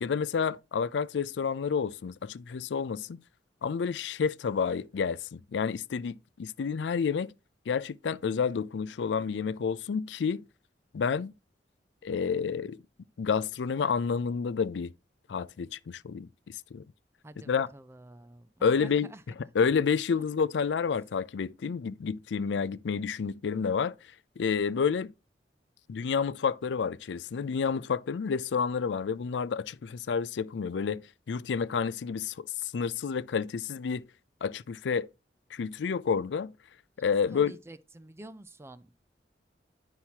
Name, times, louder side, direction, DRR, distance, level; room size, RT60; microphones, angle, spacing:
voice 1, 0.0-3.2 3.6-7.3 7.7-10.4 10.9-11.3 12.0-12.8 13.2-14.9 15.3-16.8 17.5-17.7 18.6-19.1 19.5-23.9 24.4-25.1 25.9-31.0 31.3-34.1 34.4-35.1 35.5-36.5 37.0-37.5, left 6 dB, 75° left, 0.4 m, -29 dB
voice 2, 17.2-19.2 20.2-20.3 37.3-38.9, right 1 dB, 15° right, 0.5 m, -49 dB
9.7 x 5.8 x 2.9 m
head